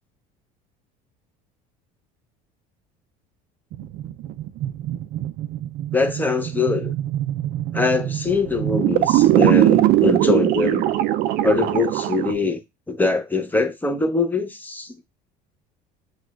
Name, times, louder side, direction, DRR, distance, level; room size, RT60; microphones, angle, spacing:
sound 1, 3.7-12.3, right 14 dB, 55° right, 0.4 m, -21 dB
voice 1, 5.9-6.9 7.7-10.9 11.4-12.6 12.9-15.0, left 3 dB, 10° left, 0.7 m, -22 dB
5.9 x 2.3 x 2.3 m
supercardioid pair, 100°, 19 cm